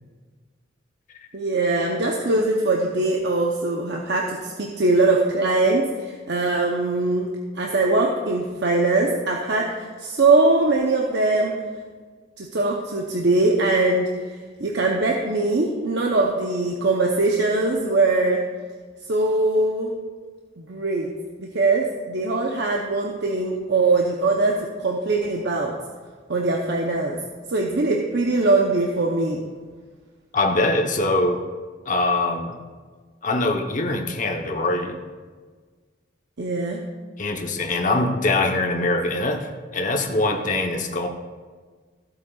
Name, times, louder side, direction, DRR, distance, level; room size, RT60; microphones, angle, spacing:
voice 1, 1.3-11.6 12.4-14.1 14.6-18.4 19.1-19.9 20.6-21.1 21.4-25.8 26.3-27.2 27.5-29.4 36.4-36.9, right 2 dB, 60° right, 0 dB, 0.8 m, -21 dB
voice 2, 30.3-31.4 31.9-32.5 33.2-35.0 37.2-41.1, left 2 dB, 45° left, 2 dB, 1.0 m, -23 dB
15.0 x 8.1 x 2.4 m, 1.5 s
head